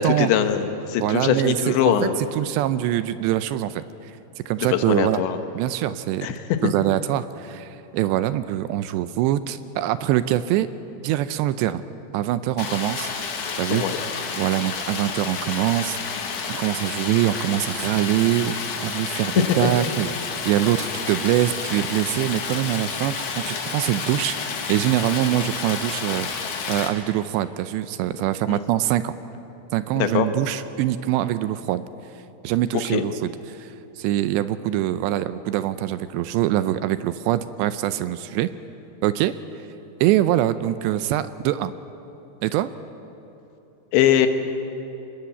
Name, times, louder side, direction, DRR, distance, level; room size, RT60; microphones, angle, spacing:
voice 1, 0.0-2.1 4.6-5.4 6.2-6.6 13.7-14.0 19.6-19.7 28.5-28.6 30.0-30.3 32.9-33.0 43.9-44.3, left 9 dB, 75° left, 8 dB, 3.5 m, -22 dB
voice 2, 1.0-1.9 2.3-3.8 4.5-5.2 5.6-6.3 6.6-10.7 11.0-11.8 12.1-13.1 13.6-13.9 14.4-16.2 16.5-18.6 18.8-26.3 26.7-29.1 29.7-31.8 32.4-38.5 39.0-39.3 40.0-41.7 42.4-42.7, right 13 dB, 80° right, 13 dB, 2.7 m, -24 dB
Stream, 12.6-26.9, left 5 dB, 55° left, 2.9 m, -30 dB
25.5 x 21.0 x 8.4 m, 2.9 s
omnidirectional pair, 5.3 m